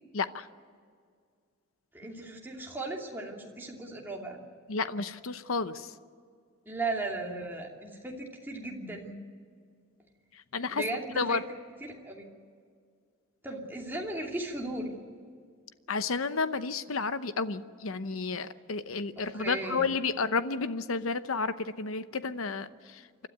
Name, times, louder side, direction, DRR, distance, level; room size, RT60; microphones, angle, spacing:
voice 1, 0.1-0.5 4.7-5.9 10.3-10.8 11.2-11.4 15.9-23.3, left 4 dB, 80° left, 12 dB, 0.9 m, -31 dB
voice 2, 1.9-4.4 6.6-9.2 10.7-11.4 11.8-12.3 13.4-14.9 19.2-19.9, right 2 dB, 10° right, -2 dB, 2.8 m, -36 dB
28.5 x 12.5 x 9.5 m, 2.1 s
head